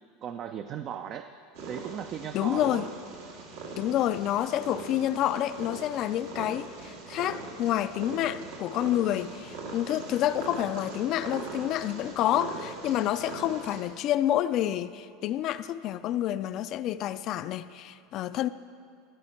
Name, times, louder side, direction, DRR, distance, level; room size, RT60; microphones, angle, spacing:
voice 1, 0.2-1.3 1.7-2.8, right 9 dB, 40° right, 0.4 m, -37 dB
Purr, 1.5-13.8, right 3 dB, 80° right, 1.7 m, -41 dB
voice 2, 2.3-2.9 3.8-18.5, left 12 dB, 45° left, 0.3 m, -28 dB
14.5 x 8.3 x 4.4 m
supercardioid pair, 135°, 0 cm